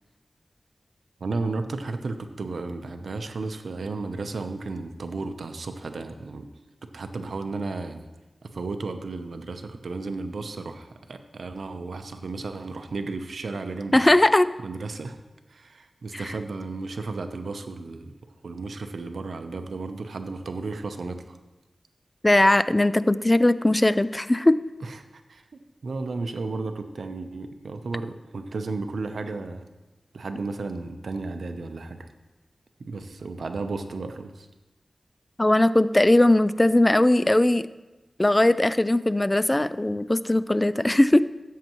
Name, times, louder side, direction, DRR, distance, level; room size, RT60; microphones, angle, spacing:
voice 1, 1.2-6.5 6.9-8.0 8.5-14.1 14.6-15.2 15.5-18.1 18.4-21.4 24.8-29.6 30.1-32.1 32.8-34.5, right 3 dB, 90° right, 8 dB, 0.7 m, -33 dB
voice 2, 13.9-14.5 16.1-16.2 22.2-24.6 35.4-37.7 38.2-41.2, left 1 dB, 20° left, 15 dB, 0.3 m, -19 dB
13.0 x 8.3 x 3.0 m, 1.1 s
wide cardioid pair, 65°, 0 cm